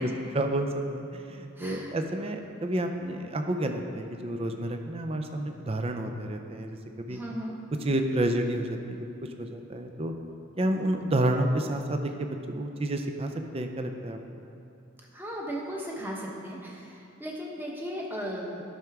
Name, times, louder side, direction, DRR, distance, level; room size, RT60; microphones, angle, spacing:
voice 1, 0.3-7.2 7.8-10.1 10.6-14.2, right 1 dB, 30° right, 5 dB, 0.5 m, -30 dB
voice 2, 1.6-1.9 7.1-7.5 15.1-18.6, equal, 10° right, -3 dB, 1.0 m, -36 dB
12.5 x 5.8 x 3.5 m, 2.6 s
head